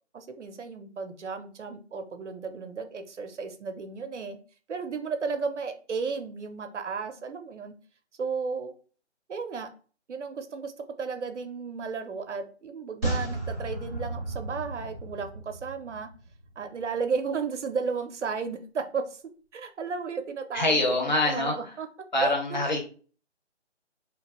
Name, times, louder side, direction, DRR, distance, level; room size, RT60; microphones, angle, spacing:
voice 1, 0.1-4.4 4.7-7.7 8.2-8.7 9.3-9.7 10.1-10.7 11.0-16.1 16.6-19.2 19.5-21.9 22.2-22.6, right 5 dB, 75° right, 7 dB, 0.6 m, -34 dB
sound 1, 13.0-16.5 16.7-16.8, right 2 dB, 5° left, 0.7 m, -34 dB
voice 2, 20.5-21.5 22.1-22.8, left 2 dB, 40° left, 0 dB, 0.7 m, -24 dB
2.8 x 2.2 x 2.9 m, 0.40 s
figure-of-eight pair, 160°, 36 cm